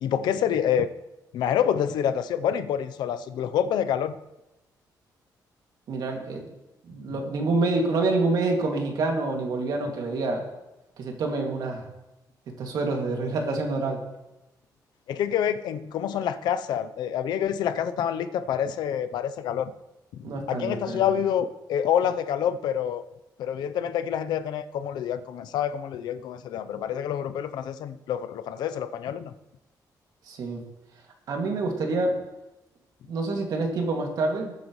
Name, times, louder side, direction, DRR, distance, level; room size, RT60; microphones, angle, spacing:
voice 1, 0.0-0.9 1.3-4.2 15.1-19.7 20.2-23.0 23.4-29.3, left 9 dB, 90° left, 11 dB, 0.7 m, -27 dB
voice 2, 5.9-6.5 6.8-10.4 11.0-11.9 12.5-14.0 20.2-21.0 30.3-30.6 31.3-32.2 33.1-34.5, right 3 dB, 65° right, 1 dB, 2.4 m, -27 dB
20.5 x 9.3 x 3.2 m, 0.96 s
cardioid pair, 145°, 7 cm